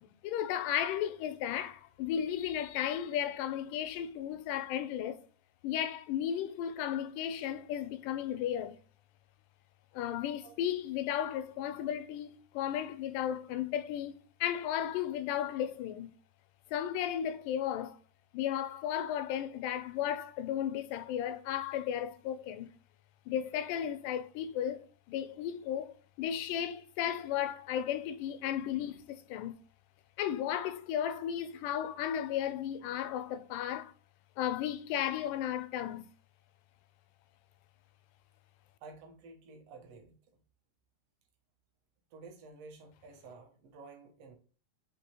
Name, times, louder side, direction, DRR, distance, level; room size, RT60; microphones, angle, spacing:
voice 1, 0.0-5.2 5.6-8.8 9.9-16.1 16.7-18.0 18.3-22.7 23.3-29.6 30.2-33.9 34.4-36.0, left 10 dB, 90° left, 2.1 m, -34 dB
voice 2, 38.8-40.2 42.1-44.4, right 3 dB, 70° right, 1.5 m, -51 dB
6.2 x 3.0 x 2.8 m
omnidirectional pair, 3.7 m